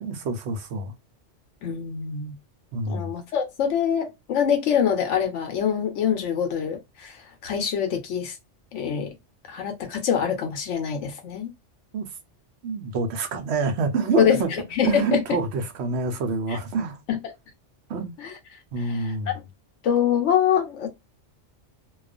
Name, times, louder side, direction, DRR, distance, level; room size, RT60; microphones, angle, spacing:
voice 1, 0.0-0.9 2.7-3.1 11.9-12.1 12.6-14.5 14.8-17.0 17.9-18.1 18.7-19.3, right 4 dB, 70° right, 0.9 m, -27 dB
voice 2, 1.6-2.4 2.9-8.4 8.7-9.1 9.5-11.5 14.2-15.2 16.5-16.6 17.1-17.2 18.2-18.3 18.8-19.3 19.8-20.9, left 8 dB, 80° left, 0.9 m, -25 dB
2.3 x 2.3 x 2.3 m
omnidirectional pair, 1.2 m